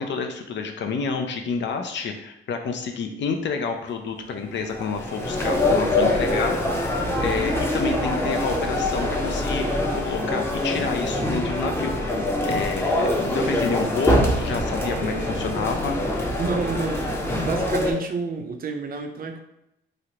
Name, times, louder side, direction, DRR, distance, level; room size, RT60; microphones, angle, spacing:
voice 1, 0.0-6.6 7.2-12.2 12.4-16.0, left 5 dB, 65° left, 5 dB, 0.5 m, -29 dB
sound 1, 4.5-17.9, left 1 dB, 10° left, 0.7 m, -24 dB
voice 2, 14.9-15.3 16.4-19.4, right 4 dB, 50° right, 4 dB, 0.5 m, -30 dB
3.1 x 2.5 x 2.8 m, 0.82 s
cardioid pair, 65°, 20 cm